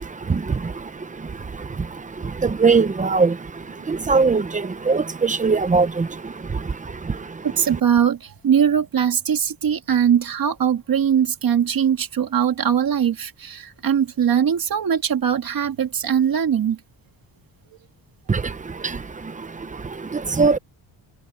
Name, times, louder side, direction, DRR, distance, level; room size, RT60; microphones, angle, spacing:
voice 1, 2.6-3.3 4.1-4.4 4.9-5.0 5.3-5.9 20.4-20.6, right 4 dB, 15° right, 0.7 m, -17 dB
voice 2, 7.6-8.2 8.4-16.8, right 8 dB, 45° right, 2.1 m, -20 dB
wide cardioid pair, 175°, 46 cm